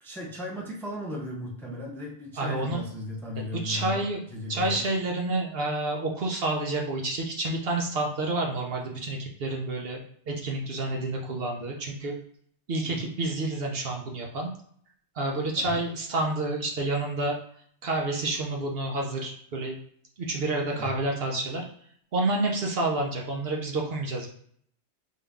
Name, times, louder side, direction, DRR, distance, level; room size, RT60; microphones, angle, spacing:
voice 1, 0.0-4.0 4.3-4.8 12.9-13.1 15.7-15.8 20.8-20.9, left 1 dB, ahead, -2 dB, 0.6 m, -36 dB
voice 2, 2.4-2.8 3.5-4.2 4.5-12.1 12.7-14.5 15.2-17.4 17.8-19.8 20.2-21.7 22.1-24.3, right 2 dB, 60° right, 0 dB, 0.9 m, -29 dB
3.7 x 2.6 x 3.5 m, 0.62 s
omnidirectional pair, 1.2 m